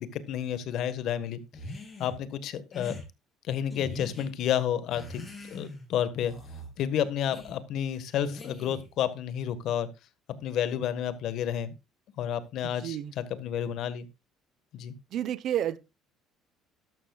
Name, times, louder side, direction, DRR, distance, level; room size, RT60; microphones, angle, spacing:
voice 1, 0.0-1.4 2.0-3.0 3.4-5.2 5.5-6.3 6.8-9.9 10.4-11.7 12.2-14.1 14.7-14.9, left 9 dB, 60° left, 1.5 m, -30 dB
sound 1, 1.5-2.2 2.7-3.0 3.7-4.3 4.9-5.9 6.3-6.7 7.3-7.6 8.3-8.9, left 2 dB, 20° left, 5.5 m, -42 dB
voice 2, 12.6-13.1 15.1-15.8, right 11 dB, 55° right, 0.9 m, -30 dB
12.5 x 12.5 x 2.4 m
cardioid pair, 130°, 0 cm